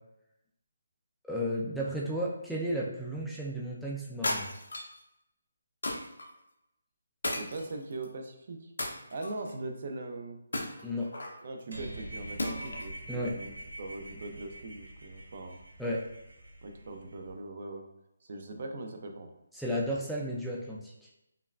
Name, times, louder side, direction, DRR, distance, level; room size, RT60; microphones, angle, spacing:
voice 1, 1.2-4.5 10.8-11.1 13.1-13.4 15.8-16.1 19.5-21.1, equal, ahead, -5 dB, 0.3 m, -33 dB
sound 1, 4.2-5.0 5.8-6.3 7.2-8.1 8.8-9.5 10.5-11.4 12.4-12.9, left 1 dB, 85° left, 0.8 m, -35 dB
voice 2, 7.3-8.7 9.1-10.4 11.4-15.6 16.6-17.8 18.3-19.3, right 2 dB, 50° right, 4 dB, 0.5 m, -41 dB
sound 2, 11.7-17.3, right 1 dB, 90° right, 1.1 m, -45 dB
5.2 x 2.3 x 2.3 m, 0.88 s
hypercardioid pair, 165°, 0 cm